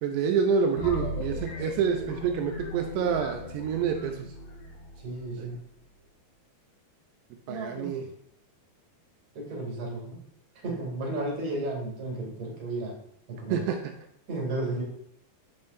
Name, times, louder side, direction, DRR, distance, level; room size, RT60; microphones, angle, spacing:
voice 1, 0.0-4.3 5.4-5.5 7.5-8.1 13.5-13.8, right 6 dB, 85° right, 4 dB, 2.9 m, -27 dB
sound 1, 0.8-5.5, left 1 dB, 70° left, 3.8 m, -37 dB
voice 2, 5.0-5.6 7.5-7.9 9.3-10.2 10.6-12.9 13.3-13.6 14.3-14.8, right 2 dB, 40° right, -3 dB, 3.1 m, -33 dB
9.7 x 5.6 x 2.6 m, 0.72 s
omnidirectional pair, 5.0 m